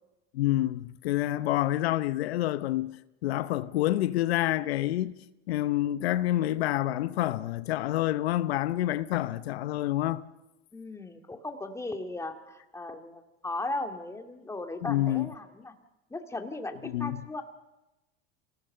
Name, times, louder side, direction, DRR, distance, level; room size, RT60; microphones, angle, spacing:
voice 1, 0.3-5.2 5.5-10.2 14.8-15.3 16.9-17.2, left 14 dB, 90° left, 0.8 m, -28 dB
voice 2, 10.7-15.7 16.1-17.4, left 2 dB, 10° left, 2.3 m, -37 dB
27.5 x 18.0 x 6.8 m
supercardioid pair, 110°, 30 cm